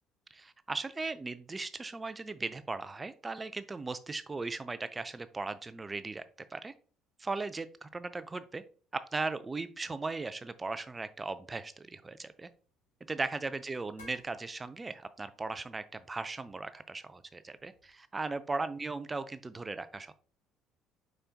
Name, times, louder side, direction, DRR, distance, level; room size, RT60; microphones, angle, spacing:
voice 1, 0.3-6.2 6.5-6.7 7.2-8.6 8.9-12.5 13.1-20.1, right 3 dB, 20° right, 12 dB, 0.4 m, -38 dB
sound 1, 12.2-18.0, left 2 dB, 80° left, 1.6 m, -63 dB
5.2 x 4.3 x 2.4 m, 0.40 s
figure-of-eight pair, 55°, 0 cm